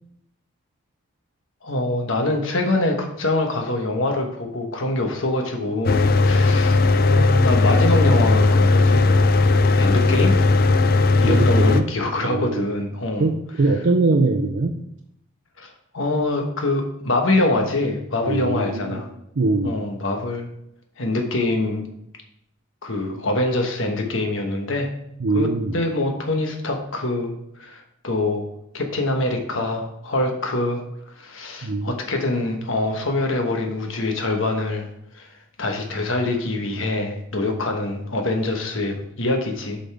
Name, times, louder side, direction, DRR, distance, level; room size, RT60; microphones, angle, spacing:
voice 1, 1.6-9.1 9.7-10.3 11.2-13.3 15.6-19.1 19.6-20.5 21.0-21.9 22.8-24.9 25.3-28.5 28.7-30.8 31.1-34.9 35.1-35.3 35.6-39.8, left 2 dB, 75° left, 3 dB, 1.2 m, -24 dB
Mechanical fan, 5.8-11.8, left 3 dB, 45° left, 0.4 m, -17 dB
voice 2, 11.2-11.8 12.2-12.7 13.2-14.8 18.3-19.0 19.4-19.8 25.2-25.8 31.6-31.9, right 3 dB, 65° right, 2 dB, 0.5 m, -22 dB
8.3 x 5.3 x 3.4 m, 0.77 s
head